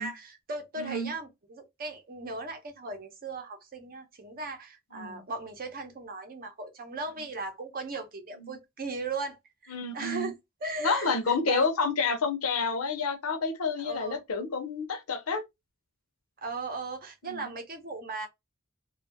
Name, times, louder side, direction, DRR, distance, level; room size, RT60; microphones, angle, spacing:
voice 1, 0.0-10.3 10.6-11.1 11.5-11.7 13.8-14.2 16.4-18.3, right 3 dB, 45° right, 0.7 m, -37 dB
voice 2, 0.8-1.1 4.9-5.2 8.4-8.6 9.7-10.3 10.8-15.4 17.2-17.5, left 4 dB, 75° left, 0.7 m, -29 dB
2.6 x 2.3 x 2.7 m
head